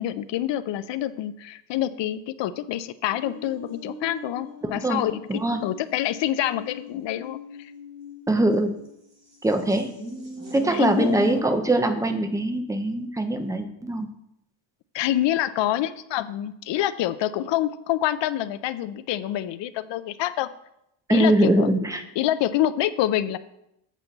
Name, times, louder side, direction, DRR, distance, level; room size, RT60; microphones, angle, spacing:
voice 1, 0.0-7.7 10.7-11.4 14.9-20.5 21.1-21.7 22.2-23.4, left 12 dB, 65° left, 14 dB, 0.5 m, -27 dB
sound 1, 3.1-8.9 9.5-11.4, equal, 35° right, 2.0 m, -38 dB
voice 2, 5.3-5.6 8.3-8.8 9.4-9.9 10.5-14.1 21.1-22.0, right 1 dB, 10° right, 7 dB, 0.3 m, -22 dB
8.3 x 6.7 x 3.9 m, 0.82 s
cardioid pair, 175°, 47 cm